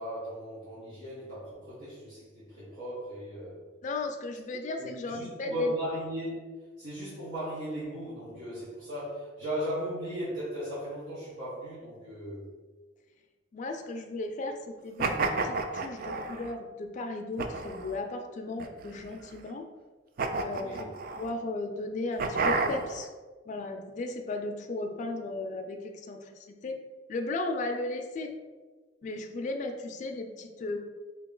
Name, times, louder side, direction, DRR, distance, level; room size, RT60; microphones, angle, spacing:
voice 1, 0.0-3.6 4.5-6.5 6.8-12.4 20.5-20.9, equal, 90° right, -12 dB, 1.2 m, -37 dB
voice 2, 3.8-5.7 13.5-19.7 20.4-20.9 21.2-23.1 23.5-26.3 26.6-26.8 27.1-28.3 29.0-30.8, left 2 dB, 40° left, 4 dB, 0.3 m, -35 dB
sound 1, 15.0-16.5 17.4-18.0 18.6-19.3 20.2-21.3 22.2-23.0, right 3 dB, 50° right, 0.3 m, -31 dB
2.9 x 2.8 x 3.7 m, 1.3 s
head